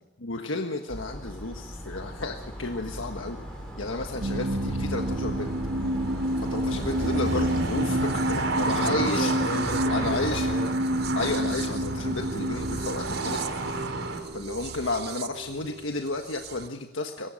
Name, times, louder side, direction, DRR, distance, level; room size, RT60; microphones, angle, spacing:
voice 1, 0.2-3.4 3.8-5.6 6.4-9.4 9.9-10.5 11.1-13.5 14.3-17.3, left 2 dB, 90° left, 4 dB, 1.5 m, -32 dB
sound 1, 0.9-7.5, equal, 5° left, 3.1 m, -39 dB
sound 2, 1.2-14.2, right 2 dB, 85° right, 4.1 m, -33 dB
sound 3, 4.2-16.7, right 1 dB, 55° right, 0.7 m, -30 dB
voice 2, 8.6-11.0, left 1 dB, 55° left, 6 dB, 4.3 m, -34 dB
22.0 x 18.5 x 6.5 m, 1.1 s
head